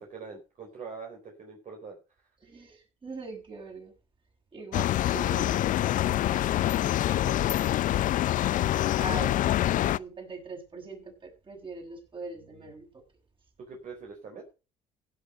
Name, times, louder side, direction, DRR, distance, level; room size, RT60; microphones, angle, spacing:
voice 1, 0.0-2.0 13.6-14.4, right 5 dB, 50° right, 4.2 m, -43 dB
voice 2, 2.4-3.9 4.5-7.5 8.9-13.0, right 3 dB, 30° right, 6.5 m, -42 dB
sound 1, 4.7-10.0, left 13 dB, 55° left, 0.5 m, -26 dB
16.0 x 6.9 x 5.4 m
supercardioid pair, 80°, 16 cm